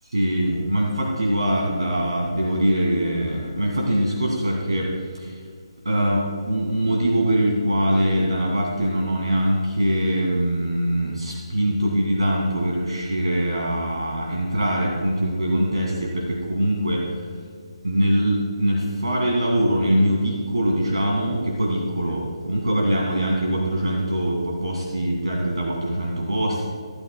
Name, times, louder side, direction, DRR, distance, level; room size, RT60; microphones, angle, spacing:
voice 1, 0.1-5.4 5.8-17.3 17.8-26.7, right 1 dB, 65° right, -2 dB, 2.1 m, -23 dB
17.5 x 12.0 x 2.3 m, 2.1 s
figure-of-eight pair, 145°, 3 cm